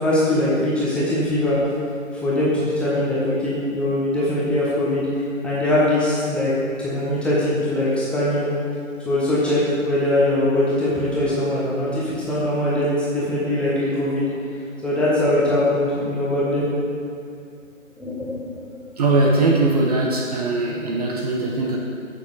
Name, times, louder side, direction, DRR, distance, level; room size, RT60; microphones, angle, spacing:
voice 1, 0.0-1.6 2.2-5.1 5.4-6.5 6.8-8.5 9.0-14.3 14.8-16.6 18.0-18.4, left 1 dB, 5° left, -9 dB, 1.0 m, -21 dB
voice 2, 19.0-21.8, right 2 dB, 30° right, -1 dB, 0.9 m, -20 dB
14.0 x 6.6 x 4.0 m, 2.5 s
figure-of-eight pair, 140°, 41 cm